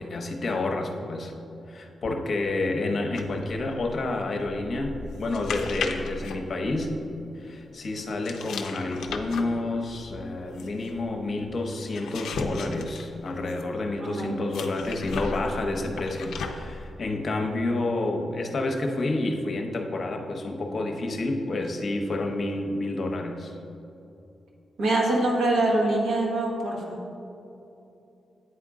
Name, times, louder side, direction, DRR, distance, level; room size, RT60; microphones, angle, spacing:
voice 1, 0.0-1.3 1.7-6.9 7.3-23.5, left 2 dB, 55° left, 3 dB, 0.7 m, -29 dB
sound 1, 3.1-7.3 8.2-13.8 14.5-16.8, left 4 dB, 90° left, 0.4 m, -37 dB
voice 2, 14.0-14.3 24.8-27.0, right 2 dB, 80° right, -2 dB, 1.2 m, -24 dB
8.8 x 3.7 x 3.6 m, 2.8 s
cardioid pair, 65°, 0 cm